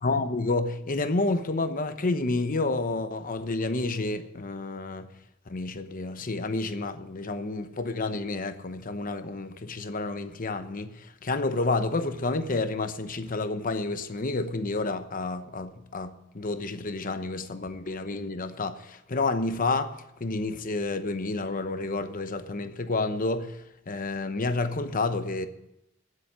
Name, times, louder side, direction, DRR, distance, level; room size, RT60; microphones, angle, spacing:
voice 1, 0.0-5.1 5.5-19.9 20.2-23.6 23.9-25.5, left 3 dB, 45° left, 0.9 m, -30 dB
10.0 x 8.0 x 9.2 m
head